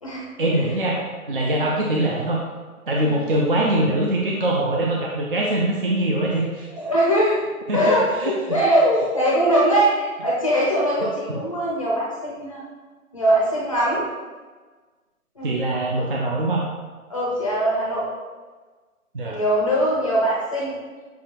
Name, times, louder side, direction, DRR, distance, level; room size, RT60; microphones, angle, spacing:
voice 1, 0.4-2.4 2.9-6.7 7.7-8.6 11.3-11.4 15.4-16.6 19.1-19.4, right 1 dB, 40° right, -2 dB, 0.5 m, -23 dB
voice 2, 6.7-7.4 7.7-12.6 13.1-14.0 15.4-15.5 17.1-18.1 19.3-20.7, right 1 dB, 25° left, -6 dB, 0.5 m, -21 dB
6.9 x 2.3 x 2.9 m, 1.4 s
figure-of-eight pair, 140°, 43 cm